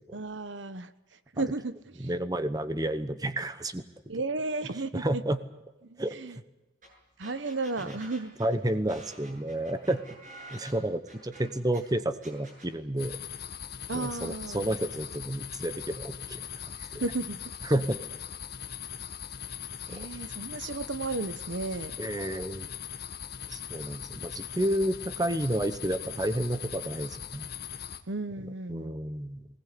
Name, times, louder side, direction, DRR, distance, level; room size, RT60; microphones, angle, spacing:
voice 1, 0.1-0.9 1.3-2.1 4.1-5.2 5.8-6.4 7.2-8.4 13.9-14.7 16.8-17.4 19.9-21.9 28.1-28.9, right 3 dB, 75° right, 13 dB, 1.1 m, -34 dB
voice 2, 2.0-3.8 4.9-5.4 6.0-6.1 7.8-8.0 8.4-10.0 10.5-13.2 13.9-16.4 16.9-17.0 17.6-18.0 19.9-20.0 22.0-22.7 23.5-27.5 28.7-29.5, right 1 dB, 20° right, 11 dB, 1.0 m, -30 dB
sound 1, 6.8-6.9 7.2-11.8 12.2-12.7, right 1 dB, 45° right, 7.6 m, -49 dB
sound 2, 13.0-28.0, left 8 dB, 55° left, 1.4 m, -40 dB
21.5 x 20.0 x 8.5 m, 1.1 s
head